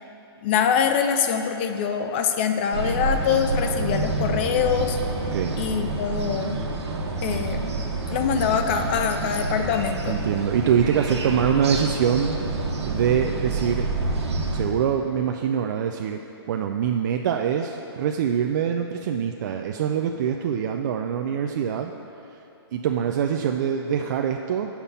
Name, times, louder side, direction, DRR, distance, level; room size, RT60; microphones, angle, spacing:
voice 1, 0.4-5.0 5.6-6.6 7.2-7.7 8.1-10.2, left 7 dB, 25° left, 6 dB, 0.3 m, -24 dB
sound 1, 2.7-14.6, right 2 dB, 90° right, 1.1 m, -28 dB
voice 2, 5.3-5.7 10.1-12.4 12.8-13.9 14.5-16.2 16.5-21.9 22.7-24.7, right 8 dB, 45° right, 4 dB, 0.4 m, -24 dB
8.5 x 5.8 x 5.4 m, 2.8 s
hypercardioid pair, 155°, 14 cm